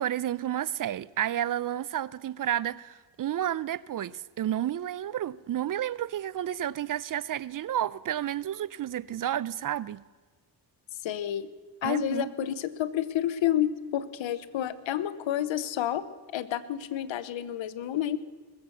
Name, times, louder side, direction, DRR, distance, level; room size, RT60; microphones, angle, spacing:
voice 1, 0.0-10.0 11.8-12.3, right 11 dB, 45° right, 0.4 m, -31 dB
voice 2, 11.0-11.5 11.8-16.0 16.3-18.2, left 11 dB, 75° left, 0.9 m, -29 dB
20.0 x 8.0 x 7.1 m
cardioid pair, 60°, 46 cm